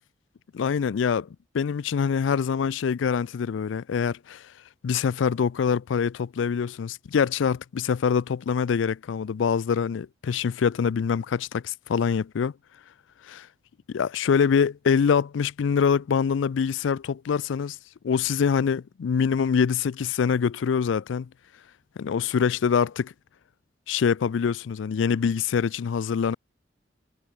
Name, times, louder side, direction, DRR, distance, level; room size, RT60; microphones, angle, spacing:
voice 1, 0.5-1.3 1.5-4.4 4.8-12.5 13.9-17.8 18.0-21.3 22.0-23.1 23.9-26.4, left 6 dB, 85° left, 0.4 m, -24 dB
head